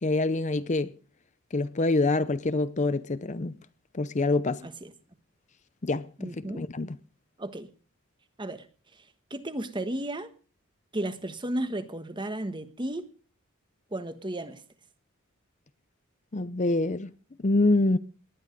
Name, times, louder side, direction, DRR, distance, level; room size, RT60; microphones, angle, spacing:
voice 1, 0.0-0.9 1.5-3.5 3.9-4.6 5.8-6.9 16.3-17.1 17.4-18.0, left 2 dB, 35° left, 0.6 m, -26 dB
voice 2, 6.2-6.7 7.4-7.7 8.4-8.7 8.9-10.3 10.9-13.1 13.9-14.6, right 1 dB, 20° right, 1.3 m, -34 dB
19.0 x 11.5 x 5.2 m
head